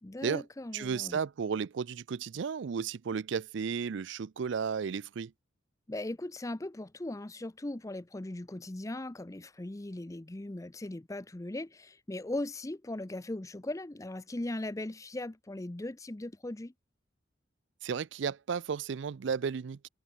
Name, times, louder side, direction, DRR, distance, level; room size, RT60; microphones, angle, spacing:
voice 1, 0.0-1.2 5.9-16.7, left 1 dB, 15° left, 0.5 m, -39 dB
voice 2, 0.7-5.3 17.8-19.9, right 6 dB, 65° right, 0.4 m, -33 dB
head